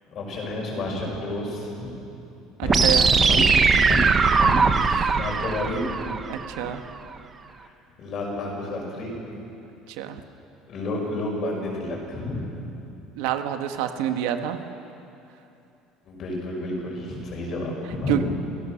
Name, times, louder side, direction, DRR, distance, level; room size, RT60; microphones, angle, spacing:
voice 1, 0.1-1.9 2.6-3.6 3.9-5.8 7.6-7.7 8.0-9.1 10.7-12.5 16.0-18.2, left 1 dB, 35° left, -1 dB, 5.7 m, -30 dB
voice 2, 2.6-3.1 5.0-5.1 6.3-6.8 9.9-10.2 13.1-14.6 17.8-18.2, right 11 dB, 85° right, 7 dB, 1.4 m, -28 dB
sound 1, 2.7-6.7, right 5 dB, 20° right, 0.8 m, -20 dB
28.5 x 17.0 x 6.5 m, 2.8 s
cardioid pair, 170°, 0 cm